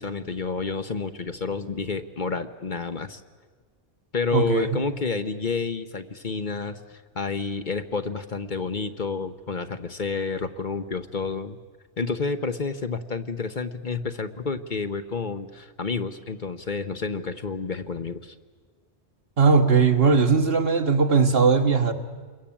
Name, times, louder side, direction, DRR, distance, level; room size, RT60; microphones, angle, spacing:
voice 1, 0.0-3.2 4.1-11.6 12.0-18.3, left 4 dB, 45° left, 8 dB, 1.1 m, -30 dB
voice 2, 4.3-4.9 19.4-21.9, right 5 dB, 60° right, 6 dB, 1.8 m, -19 dB
27.5 x 22.0 x 8.7 m, 1.5 s
omnidirectional pair, 1.1 m